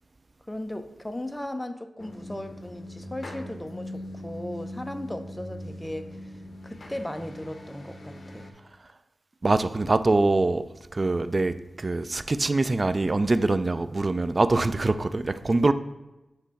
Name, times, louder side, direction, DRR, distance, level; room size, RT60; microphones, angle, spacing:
voice 1, 0.5-6.3 6.6-8.5, left 1 dB, 10° left, 8 dB, 0.5 m, -37 dB
sound 1, 2.0-8.5, left 1 dB, 55° left, 0.8 m, -41 dB
voice 2, 9.4-10.6 10.9-15.7, right 2 dB, 40° right, 12 dB, 0.3 m, -24 dB
7.6 x 3.0 x 4.1 m, 0.99 s
cardioid pair, 55°, 0 cm